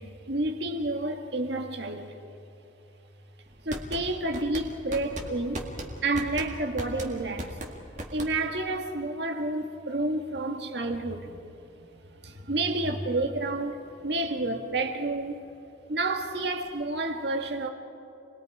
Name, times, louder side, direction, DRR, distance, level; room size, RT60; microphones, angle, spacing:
voice 1, 0.0-2.2 3.7-5.7 6.0-7.6 8.1-11.4 12.2-15.5 15.9-17.7, right 2 dB, 60° right, 1.8 m, -30 dB
sound 1, 3.5-8.6, right 1 dB, 40° right, 2.1 m, -37 dB
29.5 x 21.5 x 4.9 m
head